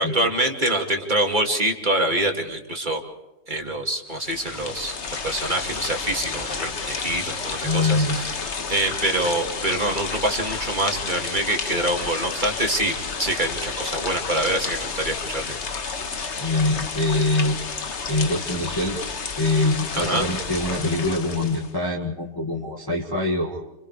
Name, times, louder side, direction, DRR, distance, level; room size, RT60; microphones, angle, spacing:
voice 1, 0.0-3.0 3.5-5.0 5.2-8.4 8.7-15.6 19.9-20.3, right 1 dB, 25° right, 2 dB, 2.6 m, -25 dB
sound 1, 4.1-21.7, left 5 dB, 40° left, 1.4 m, -31 dB
voice 2, 7.6-8.2 16.4-17.6 18.1-19.0 19.4-23.6, left 2 dB, 10° left, -1 dB, 2.2 m, -24 dB
29.5 x 28.0 x 3.4 m, 1.1 s
omnidirectional pair, 2.1 m